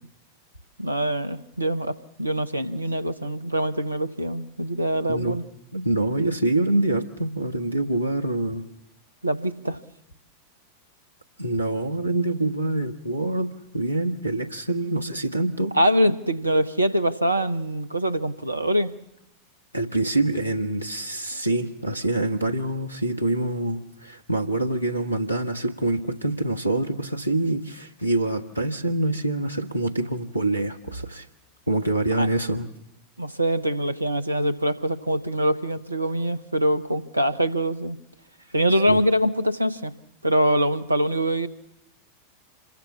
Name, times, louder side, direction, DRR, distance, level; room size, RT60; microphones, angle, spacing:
voice 1, 0.8-5.4 9.2-9.8 15.7-18.9 32.2-32.3 33.2-38.0 38.5-39.9 40.2-41.5, equal, 80° right, 15 dB, 1.1 m, -24 dB
voice 2, 5.7-8.7 11.4-15.7 19.7-31.2 31.7-32.7 38.9-39.0, right 1 dB, 90° left, 9 dB, 1.5 m, -25 dB
27.0 x 22.0 x 7.2 m, 0.81 s
figure-of-eight pair, 90°, 0 cm